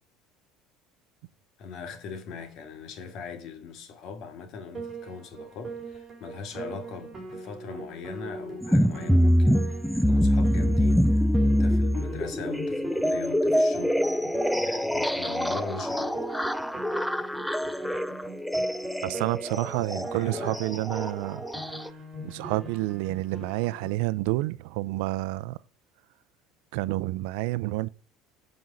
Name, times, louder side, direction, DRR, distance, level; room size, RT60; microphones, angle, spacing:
voice 1, 1.6-14.3 14.6-16.3 19.9-20.6, left 6 dB, 50° left, 2.2 m, -40 dB
Piano, 4.7-23.9, right 3 dB, 15° right, 4.2 m, -41 dB
sound 1, 8.6-21.9, equal, ahead, 0.5 m, -25 dB
voice 2, 19.0-21.5 22.2-25.6 26.7-27.9, right 19 dB, 80° right, 0.5 m, -29 dB
14.0 x 5.3 x 7.8 m
cardioid pair, 145°, 0 cm